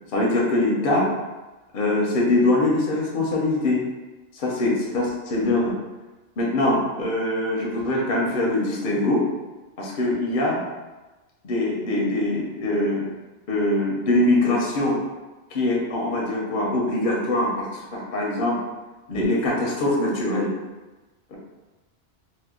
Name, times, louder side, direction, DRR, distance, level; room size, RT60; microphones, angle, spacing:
voice 1, 0.1-1.1 1.7-3.9 4.3-5.8 6.4-9.3 9.8-10.6 11.4-13.1 13.5-15.0 15.5-18.6 19.1-20.6 21.3-21.4, left 2 dB, 55° left, -3 dB, 0.7 m, -23 dB
2.7 x 2.0 x 3.5 m, 1.1 s
omnidirectional pair, 1.2 m